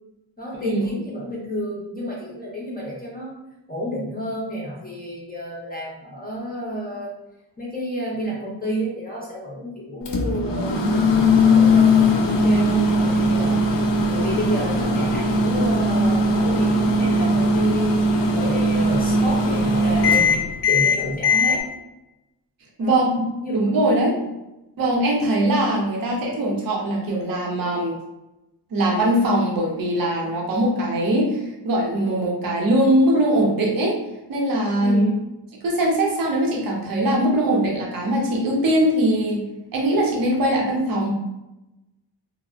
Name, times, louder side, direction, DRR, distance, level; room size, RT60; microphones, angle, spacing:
voice 1, 0.4-3.3 3.7-7.1 7.6-10.8 11.5-13.7 14.1-17.9 18.3-20.3 20.7-21.6 22.8-23.1 23.4-23.7 24.1-24.2 34.8-35.2, equal, 20° left, -5 dB, 0.5 m, -30 dB
Microwave oven, 10.1-21.6, left 2 dB, 70° left, 0.5 m, -19 dB
voice 2, 22.8-23.2 23.5-24.2 24.8-28.0 28.7-31.4 31.6-33.9 34.3-35.0 35.6-39.5 39.7-41.1, right 1 dB, 50° right, -2 dB, 0.7 m, -21 dB
3.3 x 2.0 x 2.4 m, 0.96 s
wide cardioid pair, 150°, 45 cm